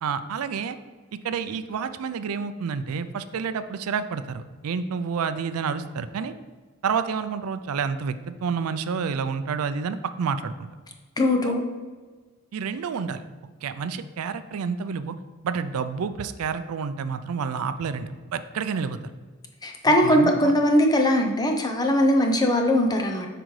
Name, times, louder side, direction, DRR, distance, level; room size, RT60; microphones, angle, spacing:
voice 1, 0.0-0.8 1.2-6.3 6.8-10.7 11.4-11.6 12.5-13.2 13.6-15.2 15.4-19.0 19.9-20.5, right 6 dB, 80° right, 12 dB, 0.4 m, -29 dB
voice 2, 11.2-11.6 19.6-23.3, left 1 dB, 20° left, 3 dB, 0.6 m, -20 dB
7.9 x 5.0 x 3.2 m, 1.4 s
head